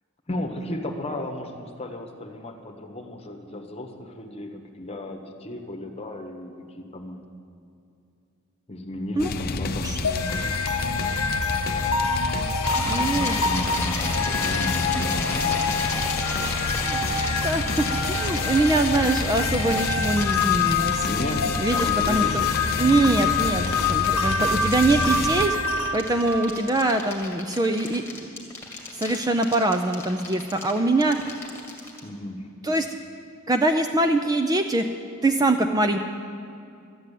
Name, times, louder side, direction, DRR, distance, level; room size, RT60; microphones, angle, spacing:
voice 1, 0.3-7.2 8.7-10.0 13.1-15.7 21.1-22.5 24.4-24.6 32.0-32.5, left 1 dB, 25° left, 3 dB, 1.2 m, -34 dB
sound 1, 9.2-25.5, left 3 dB, 45° left, 0.6 m, -29 dB
voice 2, 9.8-10.2 12.8-13.4 16.8-17.0 17.4-21.1 21.6-22.3 22.8-25.6 25.9-28.2 28.9-31.2 32.6-32.9 33.5-34.8 35.2-36.0, right 2 dB, 15° right, 6 dB, 0.4 m, -23 dB
sound 2, 10.0-27.2, left 4 dB, 70° left, 1.0 m, -27 dB
sound 3, 12.6-32.0, left 2 dB, 10° left, 2.1 m, -34 dB
13.0 x 9.5 x 8.4 m, 2.5 s
head